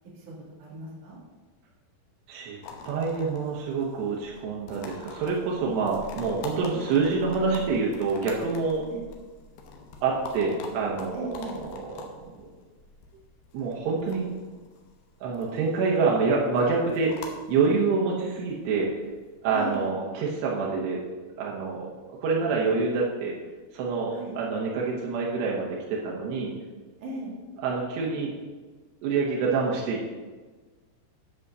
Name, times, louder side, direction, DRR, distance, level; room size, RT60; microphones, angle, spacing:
voice 1, 0.1-1.2 8.8-9.0 11.1-11.6 19.5-19.9 24.1-24.3 27.0-27.3, right 2 dB, 55° right, -5 dB, 3.9 m, -37 dB
sound 1, 2.6-19.8, left 4 dB, 75° left, 2.9 m, -45 dB
voice 2, 2.9-8.8 10.0-11.8 12.4-12.5 13.5-14.3 15.2-18.9 19.4-21.0 21.4-23.3 23.7-26.5 27.6-28.3 29.0-30.1, right 4 dB, 90° right, -3 dB, 3.4 m, -27 dB
10.5 x 4.9 x 6.8 m, 1.3 s
omnidirectional pair, 4.6 m